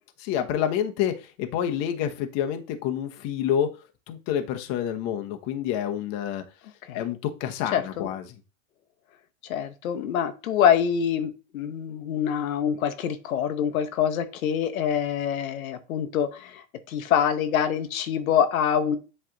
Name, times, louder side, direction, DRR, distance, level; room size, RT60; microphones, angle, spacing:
voice 1, 0.2-3.7 4.1-6.4 6.9-8.2, left 9 dB, 40° left, 6 dB, 1.0 m, -28 dB
voice 2, 7.7-8.1 9.4-19.0, left 8 dB, 75° left, 7 dB, 0.9 m, -25 dB
7.5 x 3.3 x 3.8 m, 0.32 s
hypercardioid pair, 135°, 42 cm